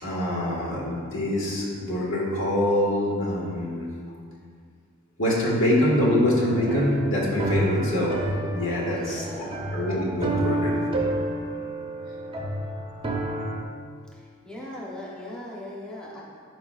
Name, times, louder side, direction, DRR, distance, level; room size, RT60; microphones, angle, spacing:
voice 1, 0.0-3.9 5.2-8.2 8.5-9.5 9.7-10.8, left 1 dB, 65° left, -4 dB, 1.6 m, -24 dB
sound 1, 6.2-13.6, right 1 dB, 25° right, 0.6 m, -29 dB
voice 2, 8.6-9.6 14.4-16.2, left 1 dB, 5° left, -6 dB, 0.8 m, -38 dB
11.5 x 4.8 x 2.4 m, 2.1 s
head